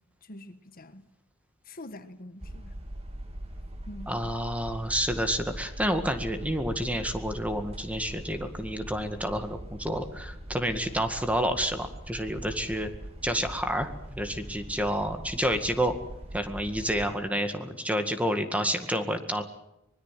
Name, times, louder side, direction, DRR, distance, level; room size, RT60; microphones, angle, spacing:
voice 1, 0.2-1.0 1.7-2.7 3.9-4.1, left 1 dB, 45° left, 1.4 m, -45 dB
sound 1, 2.4-17.2, right 1 dB, 30° right, 2.8 m, -42 dB
voice 2, 4.1-12.9 13.2-13.9 14.2-16.0 16.3-19.4, equal, 5° right, 2.0 m, -29 dB
24.5 x 21.0 x 7.6 m
head